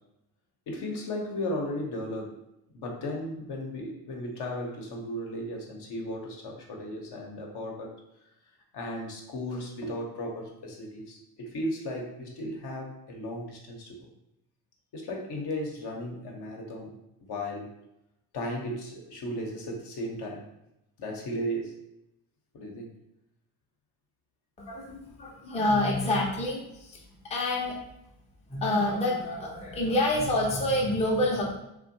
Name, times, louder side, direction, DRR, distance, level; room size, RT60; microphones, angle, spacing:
voice 1, 0.7-2.4 2.7-7.9 8.7-14.1 14.9-17.0 17.3-17.7 18.3-20.5 21.0-21.8 22.5-23.0, equal, 55° left, 0 dB, 0.8 m, -35 dB
voice 2, 24.6-27.8 28.5-31.5, left 1 dB, 15° left, -2 dB, 0.5 m, -27 dB
2.6 x 2.2 x 2.6 m, 0.85 s
supercardioid pair, 70°, 48 cm